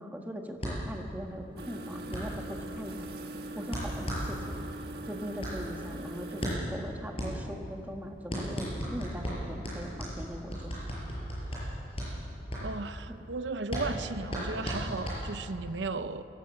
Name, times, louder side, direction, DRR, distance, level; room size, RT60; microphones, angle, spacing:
voice 1, 0.0-3.1 3.5-4.6 5.0-10.8, equal, 10° right, 2 dB, 1.4 m, -40 dB
sound 1, 0.6-15.7, equal, 30° left, 6.5 m, -36 dB
sound 2, 1.6-6.6, right 1 dB, 60° right, 1.6 m, -41 dB
voice 2, 12.6-16.3, right 3 dB, 80° right, 11 dB, 0.7 m, -35 dB
23.5 x 17.5 x 7.9 m, 2.8 s
head